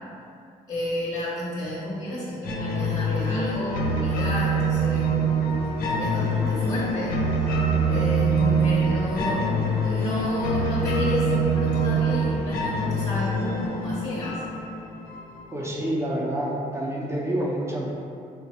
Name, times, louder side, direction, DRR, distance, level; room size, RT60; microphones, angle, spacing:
voice 1, 0.7-5.1 5.6-7.5 7.9-9.5 9.8-14.4, left 1 dB, 25° left, -5 dB, 0.7 m, -31 dB
sound 1, 2.4-15.4, right 2 dB, 80° left, 0.5 m, -24 dB
voice 2, 15.5-17.9, right 1 dB, 20° right, -4 dB, 0.6 m, -28 dB
3.5 x 2.0 x 4.1 m, 2.5 s
cardioid pair, 110°, 15 cm